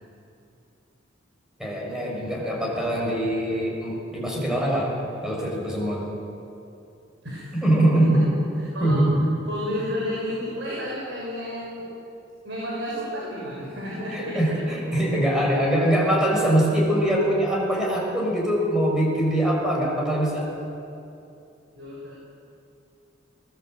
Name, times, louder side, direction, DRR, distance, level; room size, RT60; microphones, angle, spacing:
voice 1, 1.6-4.9 5.2-6.0 7.5-8.3 8.8-9.3 14.1-20.5, right 1 dB, 5° right, -3 dB, 6.3 m, -23 dB
voice 2, 7.2-7.7 8.7-9.0 9.5-11.9 12.4-15.0 21.7-22.1, equal, 65° right, -5 dB, 6.3 m, -32 dB
23.5 x 20.0 x 8.1 m, 2.7 s
head